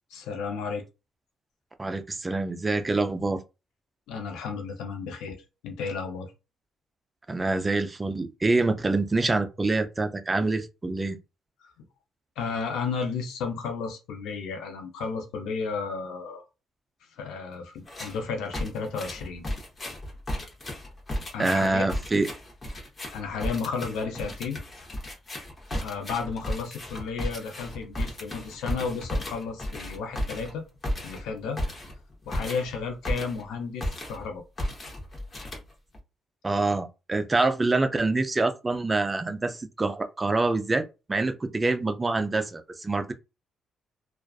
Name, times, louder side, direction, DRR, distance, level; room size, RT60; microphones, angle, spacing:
voice 1, 0.1-0.8 4.1-6.3 12.4-16.4 17.2-19.5 21.3-21.9 23.1-24.6 25.8-30.6 31.0-31.6 32.3-34.4, left 5 dB, 90° left, 0.6 m, -33 dB
voice 2, 1.8-3.4 7.3-11.2 21.4-22.3 36.4-40.8 41.1-43.1, right 3 dB, 25° right, 0.4 m, -26 dB
sound 1, 17.9-18.2 18.5-33.5 33.8-34.3 34.6-36.0, left 1 dB, 35° left, 0.9 m, -34 dB
2.4 x 2.3 x 2.3 m
cardioid pair, 90°, 0 cm